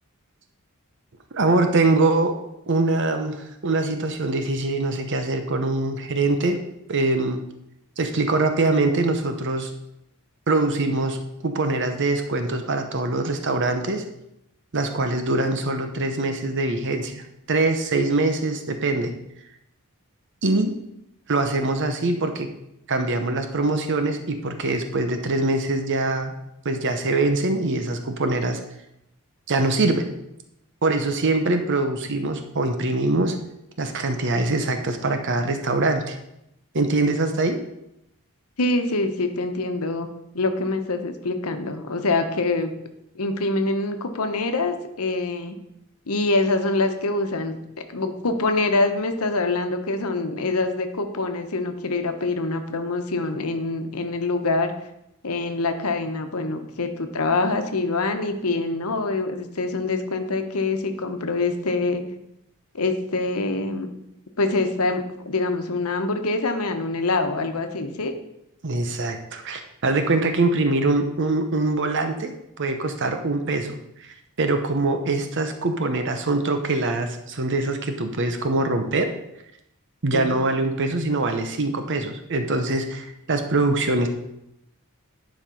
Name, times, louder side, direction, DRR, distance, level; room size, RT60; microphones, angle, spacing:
voice 1, 1.3-2.3 2.7-6.6 6.9-7.4 8.0-9.7 10.5-14.0 14.7-19.1 20.4-20.7 21.3-22.5 22.9-26.3 26.6-28.6 29.5-30.1 30.8-33.4 33.8-36.2 36.7-37.6 68.6-72.3 72.6-79.1 80.0-84.1, right 2 dB, 55° right, 7 dB, 0.8 m, -23 dB
voice 2, 38.6-40.1 40.3-42.7 43.1-45.6 46.1-47.6 47.9-54.7 55.2-62.0 62.7-63.9 64.4-68.1 80.1-80.4, left 2 dB, 80° left, 7 dB, 1.0 m, -25 dB
10.0 x 5.2 x 5.3 m, 0.82 s
head